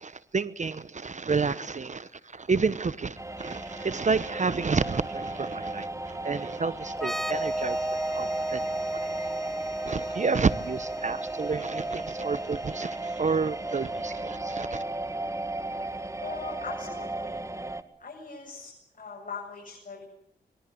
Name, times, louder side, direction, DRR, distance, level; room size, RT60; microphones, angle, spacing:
voice 1, 0.0-8.7 9.9-14.8, right 4 dB, 45° right, 15 dB, 1.0 m, -30 dB
sound 1, 3.2-17.8, right 2 dB, 15° right, 2.0 m, -36 dB
sound 2, 6.9-14.4, right 1 dB, ahead, 1.2 m, -34 dB
voice 2, 16.2-17.4 18.0-20.0, left 4 dB, 50° left, -1 dB, 8.0 m, -40 dB
25.5 x 22.0 x 7.9 m, 0.74 s
cardioid pair, 55°, 18 cm